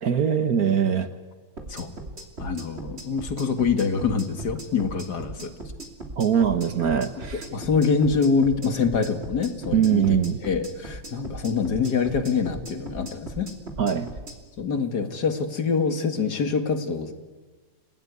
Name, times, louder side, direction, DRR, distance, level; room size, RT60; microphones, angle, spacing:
voice 1, 0.0-1.1 6.2-7.4 9.7-10.4 13.8-14.1, right 8 dB, 55° right, 11 dB, 1.6 m, -22 dB
sound 1, 1.6-14.4, right 2 dB, 35° right, 3.2 m, -38 dB
voice 2, 2.4-5.5 7.3-10.2 10.4-13.5 14.6-17.1, left 5 dB, 60° left, 8 dB, 2.4 m, -25 dB
29.5 x 19.0 x 9.6 m, 1.3 s
omnidirectional pair, 2.1 m